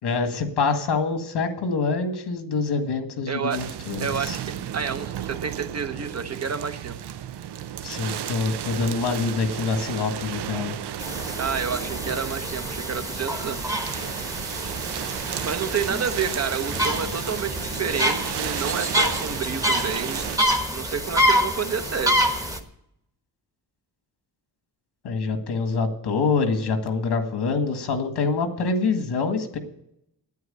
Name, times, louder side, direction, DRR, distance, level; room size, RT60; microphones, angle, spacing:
voice 1, 0.0-4.4 7.8-10.8 25.0-29.6, left 4 dB, 90° left, 7 dB, 1.9 m, -25 dB
voice 2, 3.3-3.6 4.0-4.4 4.7-7.0 11.4-13.6 15.4-20.2 20.7-22.2, right 6 dB, 40° right, 8 dB, 0.9 m, -29 dB
sound 1, 3.5-20.4, right 10 dB, 80° right, 0.7 m, -34 dB
sound 2, 11.0-22.6, equal, 10° right, 1.1 m, -27 dB
9.4 x 9.2 x 8.9 m, 0.76 s
wide cardioid pair, 150°, 39 cm